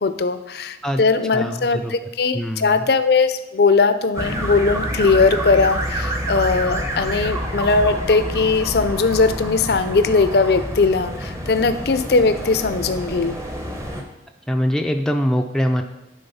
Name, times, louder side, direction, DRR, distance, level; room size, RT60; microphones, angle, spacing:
voice 1, 0.0-13.4, left 4 dB, 60° left, 11 dB, 0.5 m, -19 dB
voice 2, 1.3-1.9 2.3-2.9 14.5-15.8, equal, 5° left, 4 dB, 0.4 m, -23 dB
sound 1, 4.1-14.0, right 1 dB, 15° right, 0.8 m, -28 dB
10.0 x 3.9 x 5.5 m, 0.96 s
head